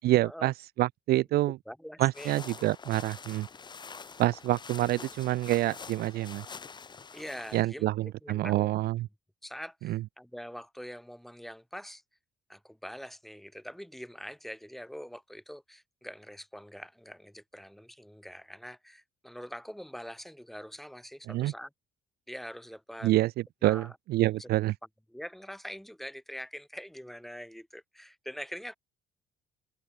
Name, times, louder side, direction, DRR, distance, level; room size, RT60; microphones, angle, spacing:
voice 1, 0.0-1.6 2.0-3.5 4.2-6.4 7.5-9.1 9.8-10.0 21.3-21.5 23.0-23.3 23.6-24.7, right 16 dB, 65° right, 0.5 m, -27 dB
voice 2, 1.7-2.7 4.9-5.1 7.1-8.7 9.4-12.0 12.5-21.7 22.3-23.1 23.6-23.9 24.2-24.5 25.1-28.8, equal, ahead, 6.5 m, -44 dB
sound 1, 2.1-7.6, left 5 dB, 25° left, 1.2 m, -46 dB
cardioid pair, 110°, 17 cm